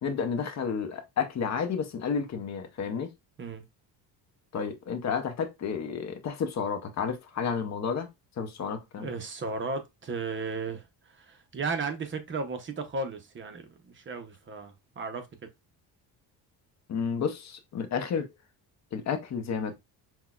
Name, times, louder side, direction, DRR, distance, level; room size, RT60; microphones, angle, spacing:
voice 1, 0.0-3.1 4.5-8.1 8.4-9.1 16.9-18.3 18.9-19.7, left 6 dB, 45° left, 0.7 m, -31 dB
voice 2, 8.9-15.5, right 4 dB, 30° right, 0.7 m, -35 dB
5.7 x 2.2 x 2.3 m
cardioid pair, 130°, 39 cm